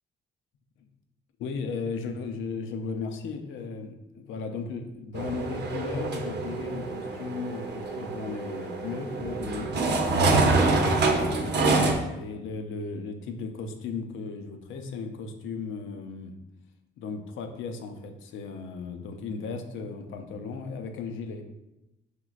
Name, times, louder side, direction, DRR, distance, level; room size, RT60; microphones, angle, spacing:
voice 1, 1.4-9.7 11.1-16.3 17.0-21.4, left 4 dB, 80° left, 5 dB, 0.6 m, -36 dB
sound 1, 5.1-11.9, right 3 dB, 60° right, 0.7 m, -26 dB
6.1 x 3.0 x 2.4 m, 0.95 s
cardioid pair, 90°, 20 cm